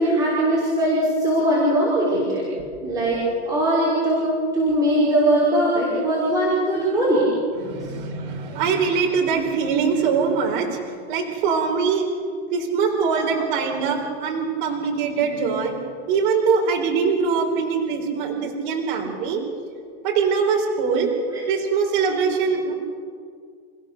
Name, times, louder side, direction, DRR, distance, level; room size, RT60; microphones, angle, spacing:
voice 1, 0.0-2.4 2.8-7.3 13.2-13.6 21.3-21.4, right 1 dB, 10° right, -7 dB, 5.2 m, -21 dB
voice 2, 7.6-12.1 12.5-15.7 16.1-19.4 20.0-21.1 21.5-22.7, right 5 dB, 45° right, 1 dB, 4.2 m, -22 dB
29.5 x 16.0 x 6.6 m, 2.1 s
supercardioid pair, 160°, 33 cm